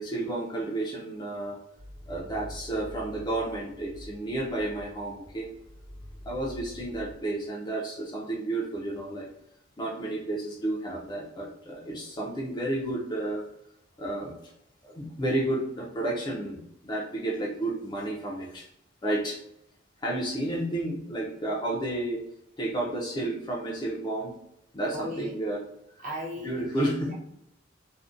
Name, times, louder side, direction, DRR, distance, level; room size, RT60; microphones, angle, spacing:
voice 1, 0.0-1.6 2.1-5.5 6.3-9.3 9.8-13.5 14.0-14.3 14.8-18.7 19.0-19.4 20.0-22.2 22.6-24.3 24.7-25.6 25.9-26.0 26.4-27.1, right 1 dB, 20° left, -3 dB, 0.4 m, -31 dB
sound 1, 1.8-7.1, left 1 dB, 85° right, 0.8 m, -46 dB
voice 2, 24.9-25.4 26.0-27.1, equal, 40° right, -4 dB, 0.5 m, -37 dB
2.5 x 2.1 x 2.4 m, 0.77 s
head